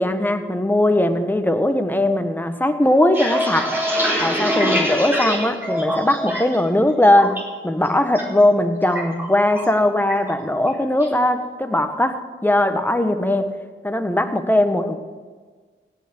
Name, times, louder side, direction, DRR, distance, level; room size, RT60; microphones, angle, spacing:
voice 1, 0.0-3.7 4.2-13.5 13.8-15.0, left 1 dB, 10° left, 7 dB, 1.4 m, -19 dB
sound 1, 2.9-6.6 6.9-7.4 7.8-8.2 8.5-9.8 10.1-10.3 10.7-11.1, equal, 10° right, 4.0 m, -24 dB
16.5 x 6.0 x 6.8 m, 1.5 s
cardioid pair, 55°, 20 cm